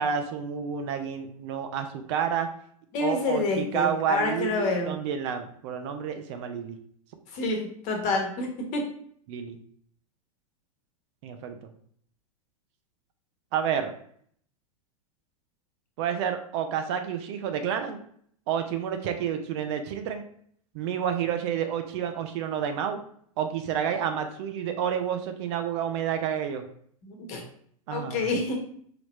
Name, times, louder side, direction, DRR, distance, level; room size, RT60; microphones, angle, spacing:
voice 1, 0.0-2.5 3.0-6.8 9.3-9.6 11.2-11.6 13.5-13.9 16.0-18.0 18.5-20.3 20.7-23.0 23.4-26.6 27.9-28.3, right 8 dB, 50° right, 7 dB, 0.6 m, -29 dB
voice 2, 2.9-5.0 7.3-8.8 27.0-27.4 27.9-28.6, left 3 dB, 40° left, 2 dB, 1.2 m, -28 dB
5.0 x 3.0 x 3.0 m, 0.62 s
hypercardioid pair, 100°, 19 cm